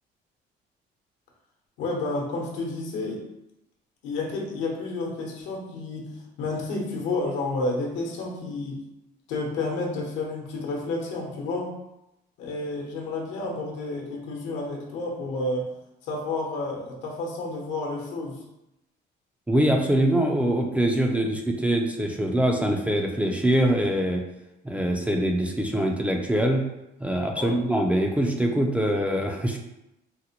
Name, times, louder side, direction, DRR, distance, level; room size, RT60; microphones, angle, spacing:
voice 1, 1.8-3.2 4.0-8.9 9.3-11.7 12.4-15.7 16.0-18.4 27.3-27.6, left 2 dB, 85° left, 0 dB, 0.9 m, -30 dB
voice 2, 19.5-24.2 24.6-26.6 27.0-29.6, right 1 dB, 5° right, 1 dB, 0.3 m, -23 dB
3.9 x 2.1 x 2.8 m, 0.90 s
cardioid pair, 130°, 19 cm